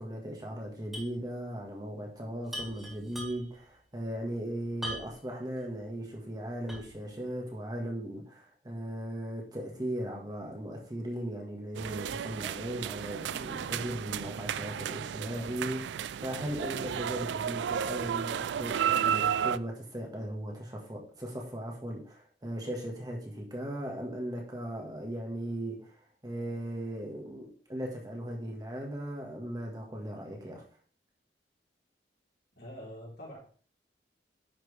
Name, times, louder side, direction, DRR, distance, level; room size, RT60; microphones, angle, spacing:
voice 1, 0.0-25.9 26.2-30.6, right 1 dB, 20° right, 1.6 m, -38 dB
sound 1, 0.9-1.2 1.5-1.6 2.5-3.6 4.8-5.3 5.8-5.9 6.7-7.1, equal, ahead, 2.5 m, -40 dB
sound 2, 11.7-19.6, right 8 dB, 85° right, 0.3 m, -33 dB
voice 2, 32.6-33.4, equal, 60° left, 3.6 m, -44 dB
10.5 x 6.0 x 3.3 m
head